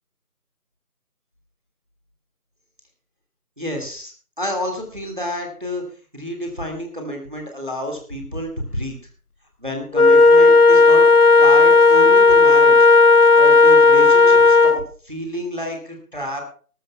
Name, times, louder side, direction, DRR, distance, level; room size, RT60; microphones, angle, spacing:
voice 1, 3.6-4.1 4.4-5.8 6.1-8.9 9.6-11.0 11.4-12.9 13.4-16.4, left 1 dB, 35° right, 2 dB, 2.1 m, -29 dB
Wind instrument woodwind instrument, 9.9-14.8, left 4 dB, 70° left, 0.9 m, -12 dB
19.5 x 13.5 x 2.3 m, 0.41 s
figure-of-eight pair, 180°, 46 cm